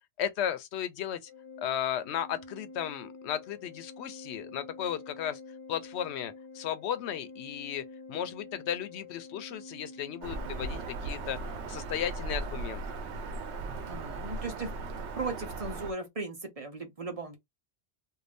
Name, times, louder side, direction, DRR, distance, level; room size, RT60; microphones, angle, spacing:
voice 1, 0.2-1.3 1.6-5.4 5.7-11.4 11.7-12.8, left 10 dB, 80° left, 0.8 m, -35 dB
Organ, 1.2-12.0, left 3 dB, 15° left, 0.5 m, -48 dB
Bird vocalization bird call bird song, 10.2-15.9, right 3 dB, 85° right, 0.9 m, -37 dB
voice 2, 13.9-14.7 15.2-17.4, right 3 dB, 40° right, 0.7 m, -37 dB
2.6 x 2.3 x 3.3 m
omnidirectional pair, 1.1 m